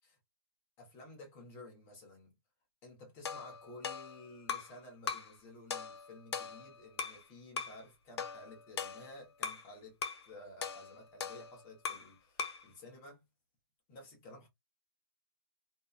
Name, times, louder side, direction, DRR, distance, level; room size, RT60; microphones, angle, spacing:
voice 1, 0.8-2.3 2.8-13.2 13.9-14.5, left 2 dB, 15° left, 0.8 m, -53 dB
sound 1, 3.2-4.8 5.1-5.4 5.7-7.2 7.6-7.8 8.2-9.7 10.0-10.3 10.6-12.1 12.4-12.7, left 6 dB, 90° left, 0.6 m, -40 dB
2.7 x 2.2 x 2.3 m
hypercardioid pair, 170°, 13 cm